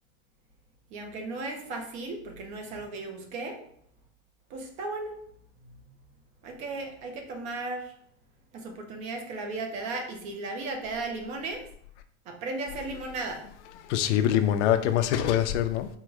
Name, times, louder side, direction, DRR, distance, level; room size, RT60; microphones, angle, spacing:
voice 1, 0.9-3.6 4.5-5.2 5.6-5.9 6.4-8.0 8.5-11.7 12.3-13.5, right 3 dB, 20° right, 3 dB, 0.4 m, -36 dB
voice 2, 13.9-15.9, left 10 dB, 70° left, 9 dB, 0.6 m, -24 dB
4.6 x 2.1 x 4.7 m, 0.65 s
supercardioid pair, 170°, 36 cm